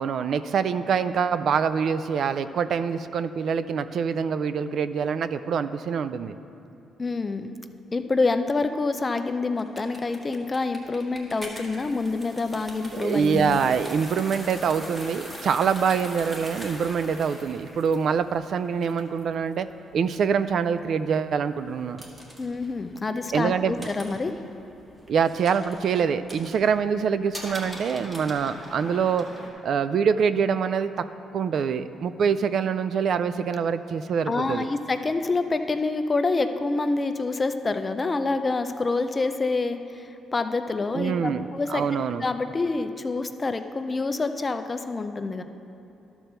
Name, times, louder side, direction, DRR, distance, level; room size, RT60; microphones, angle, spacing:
voice 1, 0.0-6.4 12.9-19.7 19.9-22.0 23.3-23.9 25.1-29.3 29.6-30.9 31.3-34.7 40.9-42.2, right 6 dB, 60° right, 12 dB, 0.3 m, -25 dB
voice 2, 7.0-7.6 7.9-13.6 22.4-24.3 34.3-41.8 42.2-45.4, left 3 dB, 30° left, 8 dB, 0.5 m, -27 dB
sound 1, 9.6-29.5, equal, 20° right, 1.7 m, -42 dB
11.5 x 4.4 x 6.7 m, 2.8 s
cardioid pair, 90°, 0 cm